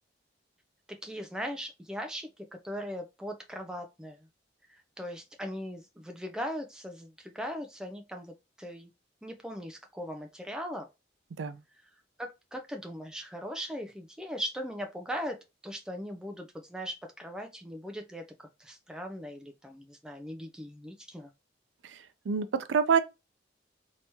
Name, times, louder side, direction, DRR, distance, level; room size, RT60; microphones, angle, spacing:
voice 1, 0.9-4.2 4.7-8.9 9.2-10.9 12.2-15.4 15.6-21.3, equal, 5° right, 0.4 m, -39 dB
voice 2, 21.8-23.0, right 6 dB, 90° right, 0.4 m, -27 dB
3.4 x 2.9 x 2.7 m
head